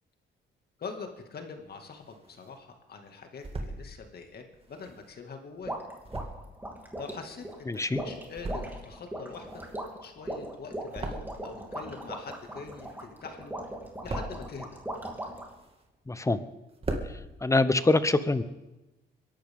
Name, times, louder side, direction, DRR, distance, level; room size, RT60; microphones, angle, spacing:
voice 1, 0.8-5.7 7.0-9.6 10.0-13.6 14.0-14.8, left 5 dB, 50° left, 4 dB, 2.2 m, -43 dB
sound 1, 1.7-2.6 3.1-3.8 4.5-7.8 8.2-9.0 9.2-11.7 12.0-13.2 13.5-14.5 15.1-16.1 16.4-16.5 16.7-17.1, right 2 dB, 30° right, 2.2 m, -39 dB
sound 2, 5.7-15.6, right 1 dB, 10° right, 2.8 m, -39 dB
voice 2, 7.7-8.0 16.1-16.4 17.1-18.4, left 2 dB, 15° left, 13 dB, 0.9 m, -25 dB
22.0 x 11.5 x 3.8 m, 1.0 s
cardioid pair, 90°, 20 cm